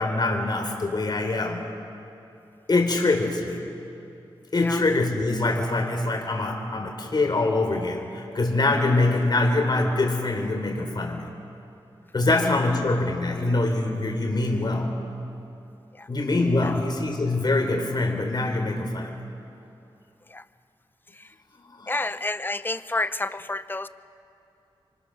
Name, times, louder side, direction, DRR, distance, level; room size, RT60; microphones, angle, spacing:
voice 1, 0.0-1.6 2.7-3.6 4.5-11.2 12.1-14.9 16.1-19.1 21.8-22.0, left 2 dB, 45° left, 2 dB, 3.9 m, -24 dB
voice 2, 21.9-23.9, left 2 dB, 20° left, 13 dB, 0.8 m, -29 dB
30.0 x 25.0 x 6.6 m, 2.7 s
cardioid pair, 70°, 10 cm